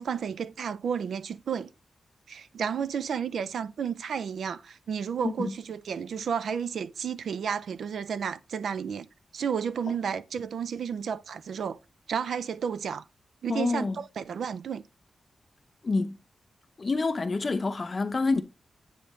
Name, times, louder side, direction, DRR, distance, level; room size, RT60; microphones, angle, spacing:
voice 1, 0.0-1.7 2.3-9.1 9.3-11.8 12.1-13.0 13.4-14.8, right 7 dB, 85° right, 0.5 m, -32 dB
voice 2, 13.5-14.0 15.8-16.2 16.8-18.4, left 3 dB, 35° left, 0.6 m, -27 dB
9.2 x 3.9 x 6.3 m
wide cardioid pair, 140°, 0 cm